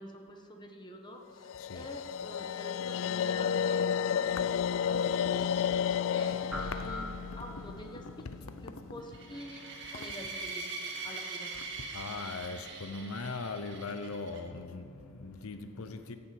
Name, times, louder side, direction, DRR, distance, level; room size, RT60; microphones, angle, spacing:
voice 1, 0.0-4.4 4.8-5.7 6.1-8.0 8.6-9.7 9.9-10.7 11.0-11.5, equal, 20° left, 1.1 m, -46 dB
sound 1, 1.4-8.6, left 8 dB, 65° left, 0.3 m, -32 dB
voice 2, 1.6-1.9 4.4-4.5 4.9-6.3 6.6-7.5 7.9-9.1 9.3-9.5 9.9-10.3 10.8-11.0 11.5-16.2, left 3 dB, 85° left, 0.7 m, -42 dB
sound 2, 6.5-8.1, left 1 dB, 5° right, 0.9 m, -41 dB
sound 3, 9.1-14.4, right 3 dB, 55° right, 1.9 m, -42 dB
15.0 x 7.1 x 7.7 m
head